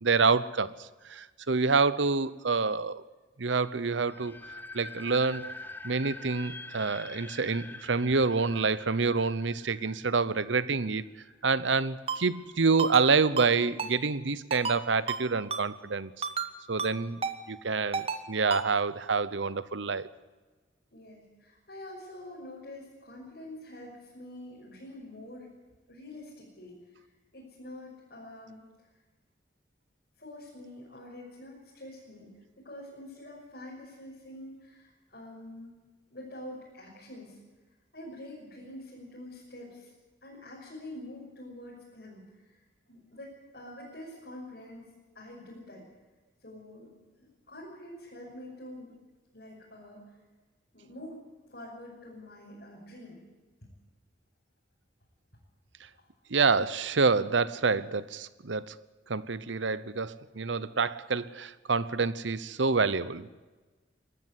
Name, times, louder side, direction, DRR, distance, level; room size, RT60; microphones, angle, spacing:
voice 1, 0.0-3.0 3.4-4.4 4.7-5.5 5.8-11.0 11.4-16.3 16.7-17.2 17.5-20.1 56.3-58.7 59.1-63.3, right 4 dB, 80° right, 17 dB, 0.9 m, -27 dB
sound 1, 4.1-10.9, left 2 dB, 10° left, 0.8 m, -45 dB
Ringtone, 12.1-12.2 12.8-13.1 13.4-13.5 13.8-13.9 14.5-14.8 15.1-15.2 15.5-15.6 16.2-16.5 16.8-16.9 17.2-17.4 17.9-18.2 18.5-18.6, right 5 dB, 30° right, 1.2 m, -32 dB
voice 2, 20.9-25.5 25.9-27.1 27.3-28.7 30.2-32.3 32.6-35.8 36.1-37.4 37.9-39.9 40.2-42.6 42.9-45.8 46.4-46.9 47.2-48.9 49.3-50.2 50.7-51.2 51.5-53.2 55.9-56.1, left 1 dB, 55° left, -5 dB, 6.2 m, -46 dB
21.5 x 13.5 x 9.8 m, 1.3 s
head